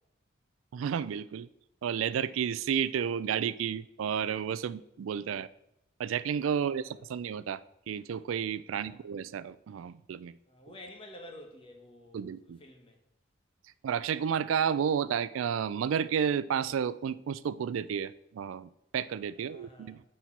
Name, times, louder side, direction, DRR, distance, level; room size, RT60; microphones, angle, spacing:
voice 1, 0.7-1.5 1.8-5.5 6.0-7.6 7.9-10.4 12.1-12.6 13.8-20.0, right 8 dB, 90° right, 17 dB, 0.3 m, -31 dB
voice 2, 6.6-6.9 8.7-9.1 10.5-13.0 19.4-20.0, left 1 dB, 25° left, 3 dB, 1.1 m, -51 dB
8.0 x 4.4 x 4.5 m, 0.81 s
head